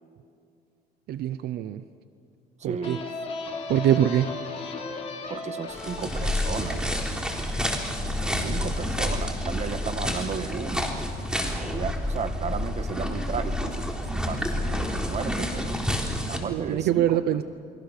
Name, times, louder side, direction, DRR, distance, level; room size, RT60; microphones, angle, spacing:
voice 1, 1.1-1.8 2.6-3.0 3.7-4.3 16.5-17.4, right 11 dB, 70° right, 12 dB, 0.8 m, -24 dB
voice 2, 2.6-3.0 5.3-6.9 8.2-10.9 11.6-13.9 14.3-15.8 16.3-17.2, right 6 dB, 40° right, 9 dB, 1.7 m, -34 dB
sound 1, 2.8-8.3, left 3 dB, 35° left, 4.2 m, -37 dB
sound 2, 5.7-16.4, left 1 dB, 5° right, 3.6 m, -29 dB
29.0 x 23.0 x 6.7 m, 2.4 s
cardioid pair, 110°, 17 cm